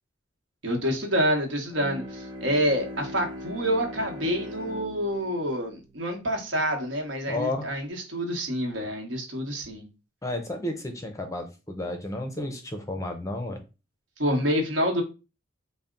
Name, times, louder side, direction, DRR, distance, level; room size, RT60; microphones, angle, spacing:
voice 1, 0.6-9.9 14.2-15.0, equal, 70° right, 2 dB, 1.0 m, -27 dB
Bowed string instrument, 1.6-6.9, equal, 20° right, 0.7 m, -41 dB
voice 2, 7.3-7.6 10.2-13.6, left 1 dB, 15° left, 4 dB, 0.5 m, -32 dB
4.1 x 2.1 x 3.7 m, 0.29 s
head